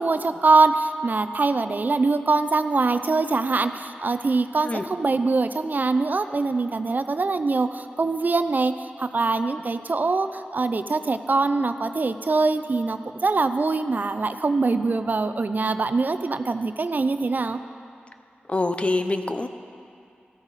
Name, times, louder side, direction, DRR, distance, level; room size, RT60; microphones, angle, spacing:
voice 1, 0.0-17.6, right 3 dB, 50° right, 10 dB, 0.5 m, -23 dB
voice 2, 18.5-19.5, left 2 dB, 30° left, 8 dB, 0.7 m, -25 dB
14.0 x 13.0 x 4.1 m, 2.5 s
cardioid pair, 60°, 4 cm